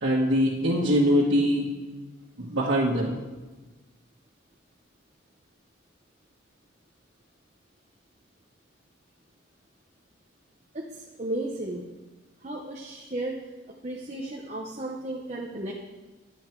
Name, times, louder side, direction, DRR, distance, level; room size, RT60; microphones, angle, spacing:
voice 1, 0.0-1.6 2.4-3.1, equal, 70° right, -7 dB, 1.6 m, -23 dB
voice 2, 10.9-11.8 12.4-13.4 13.8-15.7, right 1 dB, 35° right, -1 dB, 0.8 m, -34 dB
10.5 x 7.8 x 4.6 m, 1.2 s
head